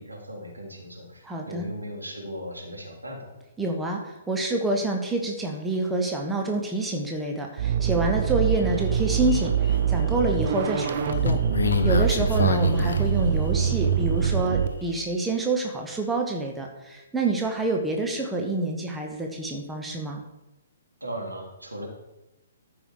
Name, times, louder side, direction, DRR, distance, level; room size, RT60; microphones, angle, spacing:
voice 1, 0.0-3.3 21.0-21.9, equal, 80° right, -2 dB, 3.3 m, -37 dB
voice 2, 1.2-1.7 3.6-11.4 11.8-20.2, right 2 dB, 5° right, 1 dB, 1.2 m, -27 dB
sound 1, 7.6-14.7, right 8 dB, 40° right, 0.8 m, -24 dB
sound 2, 8.5-8.6 9.0-9.8 10.6-13.8 14.2-14.3, left 5 dB, 60° left, 0.9 m, -27 dB
13.5 x 5.6 x 4.7 m, 0.99 s
figure-of-eight pair, 125°, 0 cm